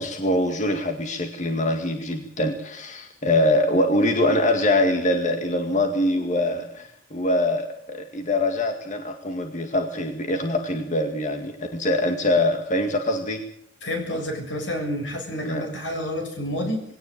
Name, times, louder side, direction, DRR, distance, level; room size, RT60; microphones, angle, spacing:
voice 1, 0.0-13.4 15.4-15.6, left 1 dB, 40° left, 5 dB, 2.1 m, -23 dB
voice 2, 13.8-16.8, equal, 85° left, 4 dB, 7.0 m, -29 dB
21.5 x 17.5 x 8.6 m, 0.70 s
head